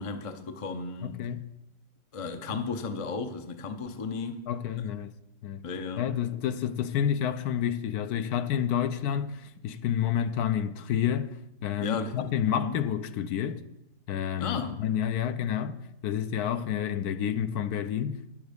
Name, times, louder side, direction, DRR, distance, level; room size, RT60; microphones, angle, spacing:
voice 1, 0.0-1.1 2.1-4.5 4.8-4.9 5.6-6.1 11.8-12.8 14.4-14.8, left 4 dB, 45° left, 0.4 m, -34 dB
voice 2, 1.0-1.4 2.5-2.6 4.5-5.1 5.4-5.6 6.0-11.3 11.6-13.6 14.1-15.8 16.0-18.2, left 9 dB, 75° left, 1.1 m, -29 dB
10.5 x 7.1 x 5.1 m
omnidirectional pair, 1.7 m